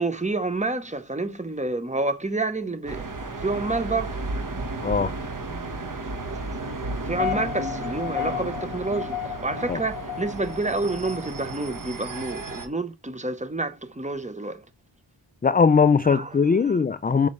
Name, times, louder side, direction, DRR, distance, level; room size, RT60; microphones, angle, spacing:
voice 1, 0.0-3.1 3.4-4.2 7.0-14.6 16.0-16.4 16.6-16.8, right 2 dB, 15° right, 0.9 m, -29 dB
sound 1, 2.9-12.7, right 2 dB, 45° right, 1.3 m, -33 dB
voice 2, 4.8-5.1 9.7-9.8 15.4-17.3, left 5 dB, 25° left, 0.3 m, -20 dB
sound 2, 6.9-11.8, left 13 dB, 90° left, 0.7 m, -34 dB
7.0 x 5.4 x 3.2 m
wide cardioid pair, 100°, 45 cm